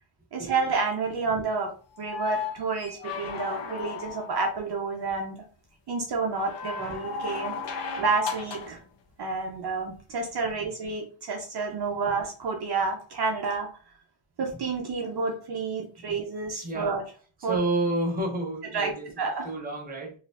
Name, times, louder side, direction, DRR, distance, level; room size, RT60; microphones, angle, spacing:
voice 1, 0.3-1.7 2.0-5.4 5.9-7.6 8.0-8.8 9.2-13.7 14.4-17.0 17.4-17.6 18.7-18.9 19.2-19.5, right 4 dB, 55° right, 1 dB, 0.8 m, -29 dB
sound 1, 2.0-4.5 6.3-8.8 10.4-10.5, left 5 dB, 60° left, 0.8 m, -35 dB
voice 2, 16.6-17.0 17.4-19.1 19.4-20.1, right 2 dB, 20° right, -1 dB, 1.0 m, -30 dB
4.2 x 2.6 x 2.5 m, 0.39 s
cardioid pair, 135°, 48 cm